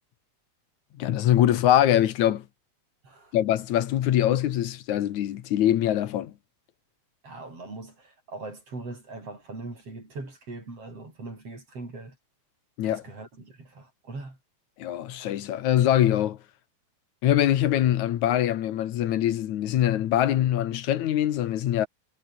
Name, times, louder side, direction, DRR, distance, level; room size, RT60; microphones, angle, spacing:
voice 1, 1.0-2.5 3.3-6.3 12.8-13.0 14.8-16.4 17.2-21.9, left 12 dB, 85° left, 2.7 m, -23 dB
voice 2, 3.0-3.4 7.2-12.2 12.8-14.4, right 3 dB, 55° right, 8.9 m, -41 dB
omnidirectional pair, 3.3 m